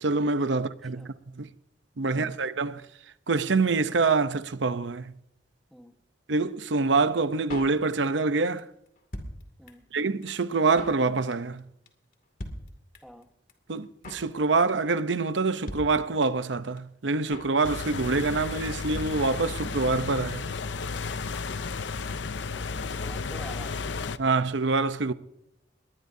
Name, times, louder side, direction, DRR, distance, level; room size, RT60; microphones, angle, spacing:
voice 1, 0.0-1.5 2.0-2.9 3.3-5.1 6.3-8.7 9.9-11.6 13.7-20.5 24.2-25.1, right 3 dB, 90° right, 0.8 m, -26 dB
Drum kit, 7.5-8.3 8.6-8.7 8.9-10.0 10.2-10.3 10.5-11.0 11.3-11.6 11.9-12.0 12.1-12.2 12.4-13.2 13.5-13.6 13.8-14.3 14.6-14.9 15.1-15.2 15.4-15.5 15.7-16.5 16.8-16.9 17.0-17.6 17.9-18.1 18.4-18.5 18.7-18.8 18.9-19.8 20.0-20.1 20.3-20.4, left 1 dB, 50° left, 2.4 m, -41 dB
voice 2, 9.6-9.9 13.0-13.3 22.5-23.8, equal, ahead, 1.3 m, -47 dB
sound 1, 17.6-24.2, left 4 dB, 80° left, 0.7 m, -33 dB
21.0 x 19.5 x 2.7 m
head